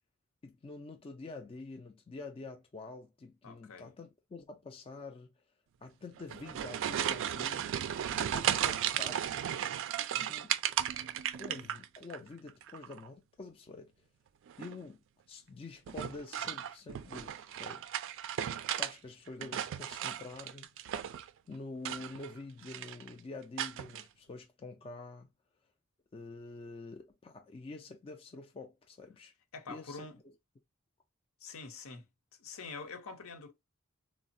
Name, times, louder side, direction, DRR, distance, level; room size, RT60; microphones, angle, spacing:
voice 1, 0.4-5.3 5.8-7.7 8.1-9.2 10.1-10.6 11.3-13.9 14.6-17.9 18.8-20.7 21.5-25.3 26.1-29.3 29.7-30.3, left 3 dB, 25° left, 0.3 m, -47 dB
voice 2, 3.4-3.9 29.5-30.2 31.4-32.0 32.4-33.5, left 4 dB, 70° left, 0.7 m, -45 dB
sound 1, 6.2-12.2 12.5-13.1 14.5-14.9 15.9-18.9 19.3-21.3 21.8-22.4 22.6-23.1 23.6-24.0, right 10 dB, 60° right, 0.3 m, -35 dB
3.2 x 2.0 x 2.5 m
head